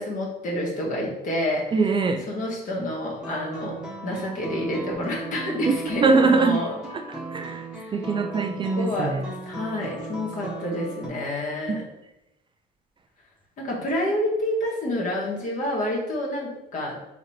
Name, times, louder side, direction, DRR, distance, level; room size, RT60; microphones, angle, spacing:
voice 1, 0.0-1.6 2.3-3.8 4.0-6.7 7.7-7.9 8.8-9.1 9.4-11.8 13.6-17.0, left 1 dB, 50° left, -3 dB, 1.6 m, -28 dB
voice 2, 1.7-2.3 5.7-6.6 7.1-7.7 7.9-9.2, right 4 dB, 30° right, 5 dB, 0.4 m, -22 dB
sound 1, 3.2-11.1, right 3 dB, 5° right, 1.1 m, -37 dB
4.0 x 3.1 x 4.2 m, 0.96 s
cardioid pair, 110°, 17 cm